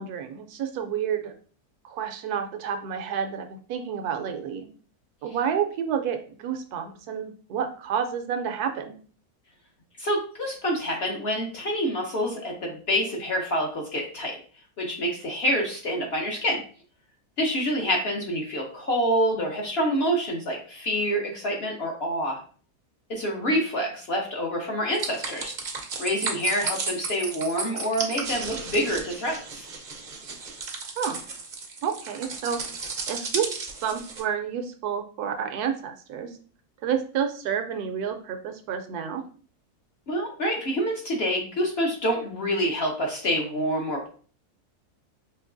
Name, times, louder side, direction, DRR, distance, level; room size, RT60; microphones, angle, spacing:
voice 1, 0.0-1.3 1.8-4.7 5.2-9.0 31.0-31.2 31.8-32.6 33.1-36.4 36.8-39.2, right 7 dB, 80° right, 7 dB, 1.1 m, -30 dB
voice 2, 10.0-14.4 14.8-16.6 17.4-22.4 23.1-25.5 26.0-29.7 40.1-44.1, equal, 55° left, 0 dB, 0.8 m, -27 dB
sound 1, 24.9-34.2, right 4 dB, 55° right, 0.5 m, -34 dB
4.5 x 2.9 x 2.4 m, 0.41 s
omnidirectional pair, 1.6 m